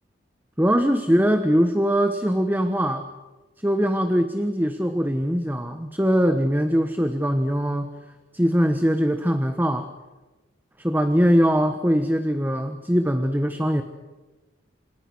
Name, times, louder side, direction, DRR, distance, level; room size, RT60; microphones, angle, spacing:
voice 1, 0.6-3.1 3.6-7.9 8.3-9.9 10.8-13.8, equal, 10° right, 8 dB, 1.2 m, -21 dB
28.5 x 27.0 x 6.3 m, 1.2 s
head